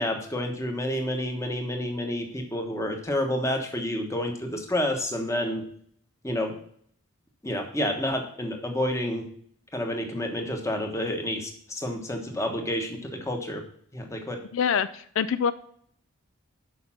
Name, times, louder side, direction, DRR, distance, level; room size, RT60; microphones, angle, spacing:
voice 1, 0.0-5.6 6.2-6.5 7.4-9.3 9.7-13.6 13.9-14.4, left 1 dB, 15° left, 3 dB, 1.1 m, -29 dB
voice 2, 14.5-15.5, left 7 dB, 75° left, 13 dB, 0.4 m, -25 dB
6.6 x 5.3 x 5.7 m, 0.63 s
head